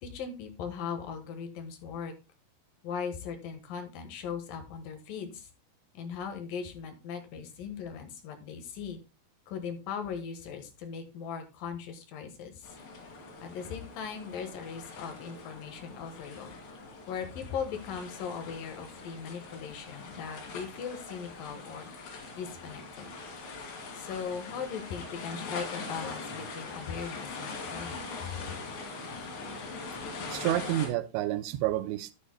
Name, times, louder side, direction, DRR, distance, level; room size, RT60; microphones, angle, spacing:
voice 1, 0.0-2.1 2.8-5.5 5.9-9.0 9.5-12.7 13.4-16.6 17.1-21.8 22.3-23.1 24.0-28.4, left 6 dB, 65° left, 2.7 m, -39 dB
sound 1, 12.6-30.9, left 3 dB, 80° left, 4.8 m, -42 dB
voice 2, 30.3-32.1, right 14 dB, 90° right, 2.9 m, -29 dB
12.5 x 10.0 x 2.2 m
omnidirectional pair, 5.0 m